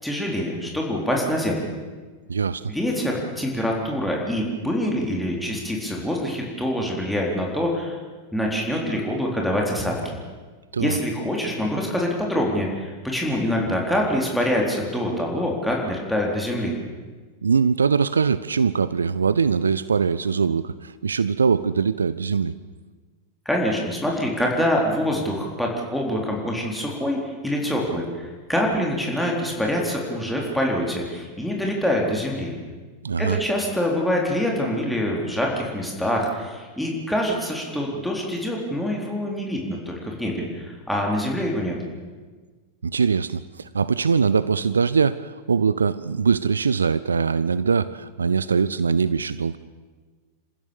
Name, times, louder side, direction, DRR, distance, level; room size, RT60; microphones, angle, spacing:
voice 1, 0.0-1.7 2.7-8.0 8.3-10.2 10.8-16.7 23.5-32.5 33.2-41.7, equal, ahead, -2 dB, 4.0 m, -25 dB
voice 2, 2.3-2.7 10.7-11.0 17.4-22.5 33.0-33.4 42.8-49.6, right 5 dB, 75° right, 17 dB, 0.5 m, -22 dB
28.0 x 15.5 x 7.1 m, 1.4 s
figure-of-eight pair, 90°, 0 cm